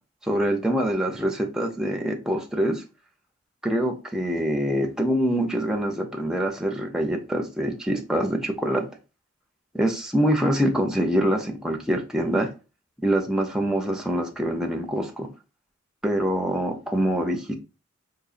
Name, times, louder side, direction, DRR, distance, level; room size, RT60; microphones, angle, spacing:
voice 1, 0.2-2.8 3.6-8.9 9.7-12.5 13.0-15.3 16.0-17.5, equal, 5° right, 0.4 m, -25 dB
3.9 x 2.7 x 2.4 m
head